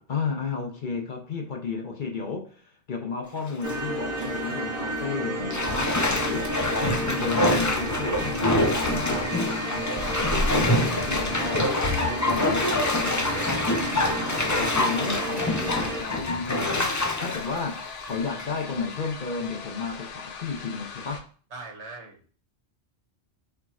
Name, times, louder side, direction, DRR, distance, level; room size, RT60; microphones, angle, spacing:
voice 1, 0.0-21.3, left 5 dB, 50° left, 0.8 m, -33 dB
Bathtub (filling or washing), 3.3-3.8 4.2-4.3 5.5-18.6 19.0-19.1, left 1 dB, 25° left, 0.4 m, -26 dB
sound 1, 3.6-16.0, right 1 dB, 25° right, 1.0 m, -32 dB
sound 2, 8.6-21.2, left 5 dB, 80° left, 1.1 m, -39 dB
voice 2, 10.0-10.6 21.5-22.2, right 3 dB, 70° right, 1.4 m, -40 dB
4.6 x 4.4 x 2.4 m
omnidirectional pair, 1.2 m